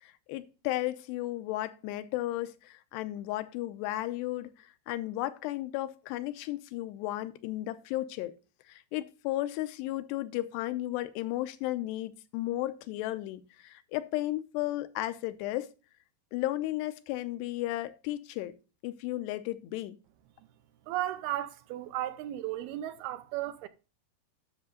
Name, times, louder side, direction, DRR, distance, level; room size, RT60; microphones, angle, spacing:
voice 1, 0.0-4.5 4.9-8.4 8.7-15.7 16.3-18.6 18.8-20.0, left 16 dB, 85° left, 2.8 m, -34 dB
voice 2, 20.9-23.7, right 13 dB, 80° right, 2.4 m, -35 dB
10.5 x 6.5 x 3.8 m
omnidirectional pair, 4.8 m